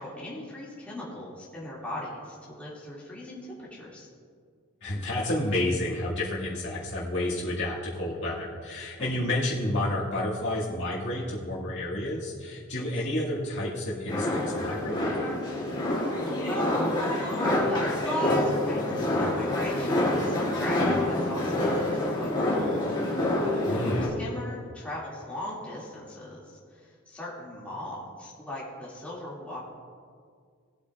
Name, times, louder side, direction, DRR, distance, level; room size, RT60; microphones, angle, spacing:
voice 1, 0.0-4.1 9.0-9.3 12.7-13.0 16.0-29.6, left 1 dB, 5° left, -8 dB, 2.2 m, -38 dB
voice 2, 4.8-15.4 23.7-24.1, left 1 dB, 60° left, -9 dB, 2.0 m, -30 dB
sound 1, 14.1-24.1, left 1 dB, 25° left, 2.5 m, -27 dB
18.0 x 8.3 x 2.4 m, 2.1 s
head